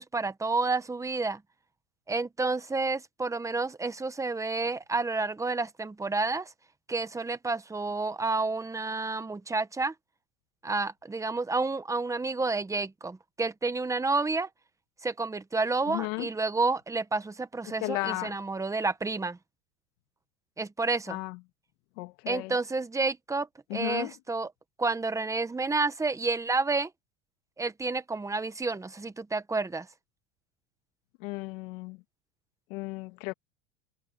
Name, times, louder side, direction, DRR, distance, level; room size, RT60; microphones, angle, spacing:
voice 1, 0.0-1.4 2.1-6.5 6.9-9.9 10.6-14.5 15.0-19.4 20.6-21.2 22.3-24.5 24.8-26.9 27.6-29.9, right 3 dB, 5° right, 1.0 m, -30 dB
voice 2, 15.9-16.3 17.7-18.4 21.1-21.4 22.0-22.5 23.7-24.1 31.2-32.0 32.7-33.3, left 25 dB, 65° left, 2.0 m, -34 dB
supercardioid pair, 135°, 42 cm